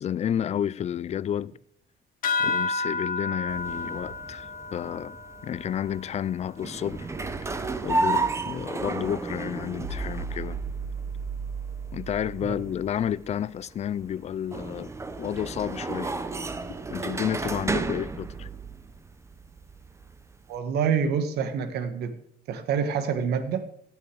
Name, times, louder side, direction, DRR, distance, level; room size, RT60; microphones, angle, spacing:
voice 1, 0.0-1.5 2.4-5.2 5.4-7.1 7.4-7.5 7.8-10.6 11.9-14.9 15.2-16.1 16.9-18.5, left 9 dB, 40° left, 0.5 m, -31 dB
sound 1, 2.2-7.2, left 3 dB, 55° left, 1.6 m, -32 dB
sound 2, 3.5-20.5, right 3 dB, 15° right, 1.0 m, -33 dB
sound 3, 9.8-13.2, right 5 dB, 50° right, 4.0 m, -35 dB
voice 2, 20.5-22.2 22.5-23.7, right 7 dB, 70° right, 1.7 m, -27 dB
15.5 x 9.6 x 4.8 m
cardioid pair, 110°, 17 cm